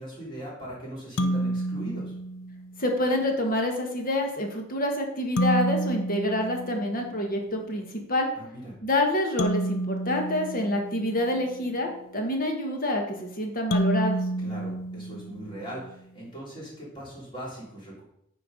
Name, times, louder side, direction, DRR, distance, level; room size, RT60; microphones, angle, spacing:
voice 1, 0.0-2.1 8.4-8.8 14.4-18.0, right 1 dB, 25° left, -5 dB, 3.6 m, -40 dB
sound 1, 1.2-2.8 5.4-7.4 9.4-11.5 13.7-15.8, right 1 dB, 90° left, 0.6 m, -29 dB
voice 2, 2.8-8.3 8.8-14.2, left 1 dB, 45° left, 2 dB, 1.5 m, -27 dB
9.3 x 4.6 x 5.2 m, 0.74 s
head